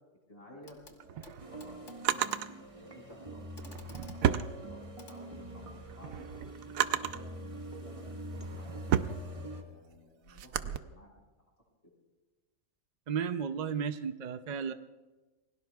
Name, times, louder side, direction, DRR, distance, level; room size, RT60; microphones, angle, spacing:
voice 1, 0.3-2.3 2.7-4.8 5.1-6.3 6.6-11.1, equal, 25° left, -1 dB, 5.2 m, -55 dB
Clock, 0.6-1.0 1.2-5.9 7.2-7.3, left 2 dB, 60° left, 1.9 m, -56 dB
Drawer open or close, 0.8-2.5 3.5-5.2 5.6-7.3 7.9-10.8, right 10 dB, 80° right, 1.1 m, -33 dB
sound 1, 1.4-9.6, equal, 25° right, 1.5 m, -44 dB
voice 2, 13.1-14.7, right 7 dB, 55° right, 10 dB, 0.5 m, -34 dB
28.5 x 21.5 x 2.3 m, 1.2 s
omnidirectional pair, 1.4 m